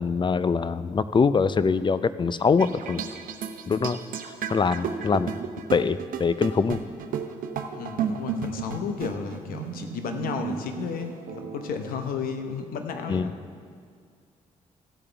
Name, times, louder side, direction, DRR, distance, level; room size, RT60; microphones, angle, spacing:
voice 1, 0.0-3.0 3.7-4.0 4.3-5.3 5.7-6.8 13.1-13.3, left 5 dB, 30° left, 14 dB, 0.5 m, -23 dB
sound 1, 2.6-12.0, right 7 dB, 70° right, 0.8 m, -34 dB
voice 2, 7.7-13.3, left 6 dB, 75° left, 6 dB, 1.0 m, -33 dB
15.5 x 8.5 x 3.4 m, 2.2 s
supercardioid pair, 55°, 15 cm